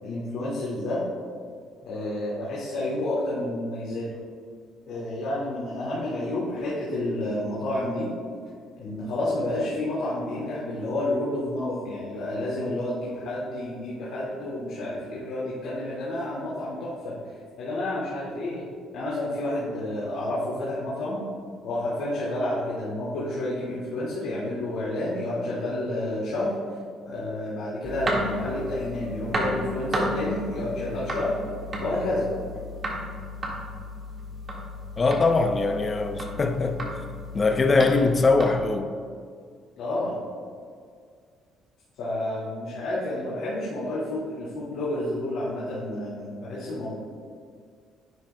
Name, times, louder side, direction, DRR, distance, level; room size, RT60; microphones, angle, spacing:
voice 1, 0.0-1.0 1.8-4.1 4.9-8.1 8.8-17.2 17.6-18.6 18.9-21.2 21.6-26.5 27.1-31.3 31.8-32.3 39.8-40.2 42.0-46.9, left 1 dB, 80° left, 2.0 m, -30 dB
sound 1, 27.8-38.5, equal, 35° right, 1.7 m, -33 dB
voice 2, 35.0-36.9 37.3-38.9, left 3 dB, 30° left, 0.6 m, -22 dB
10.5 x 8.8 x 2.2 m
cardioid pair, 120°, 0 cm